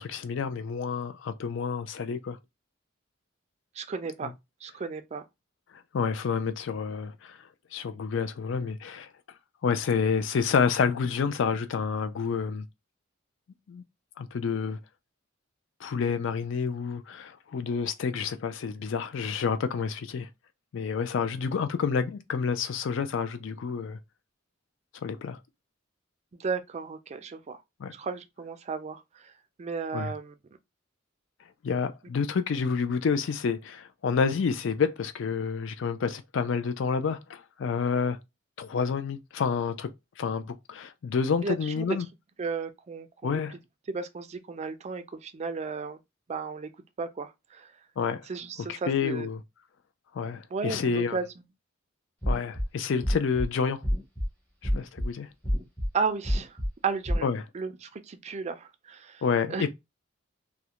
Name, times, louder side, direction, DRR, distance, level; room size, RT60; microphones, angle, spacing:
voice 1, 0.0-2.4 4.2-4.3 5.9-7.4 7.7-9.1 9.6-12.6 13.7-13.8 14.2-14.8 15.8-20.3 20.7-24.0 25.0-25.4 27.8-27.9 29.9-30.1 31.6-38.2 38.6-39.9 40.2-42.1 43.2-43.6 48.0-48.3 48.6-49.4 50.1-51.2 52.3-53.8 54.6-55.3 57.2-57.4 59.2-59.7, left 5 dB, 65° left, 0.4 m, -29 dB
voice 2, 3.8-4.3 4.6-5.2 26.3-27.6 27.9-29.3 29.6-30.3 41.4-42.0 42.4-43.6 43.9-46.0 46.3-46.7 47.0-47.7 48.3-49.3 50.5-51.3 55.9-56.6 56.8-57.3 57.5-59.2 59.5-59.7, right 5 dB, 35° right, 0.3 m, -34 dB
Cardiac and Pulmonary Sounds, 52.2-52.6 53.0-53.4 53.8-54.3 54.6-55.1 55.4-55.9 56.2-56.7 57.0-57.2, equal, 10° left, 0.7 m, -27 dB
2.4 x 2.1 x 2.8 m
head